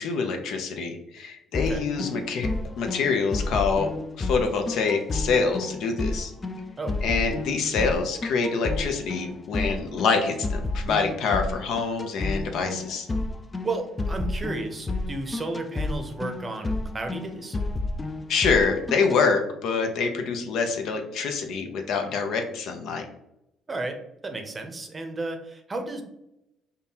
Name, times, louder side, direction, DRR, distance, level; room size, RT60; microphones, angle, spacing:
voice 1, 0.0-2.5 2.8-3.9 4.2-6.3 7.0-13.1 18.3-23.0, left 5 dB, 70° left, 5 dB, 0.6 m, -26 dB
sound 1, 1.5-19.2, left 2 dB, 25° left, 0.3 m, -31 dB
voice 2, 13.6-17.6 23.7-24.0 24.2-26.0, right 2 dB, 25° right, 5 dB, 0.7 m, -33 dB
5.1 x 2.3 x 2.8 m, 0.85 s
cardioid pair, 95°, 0 cm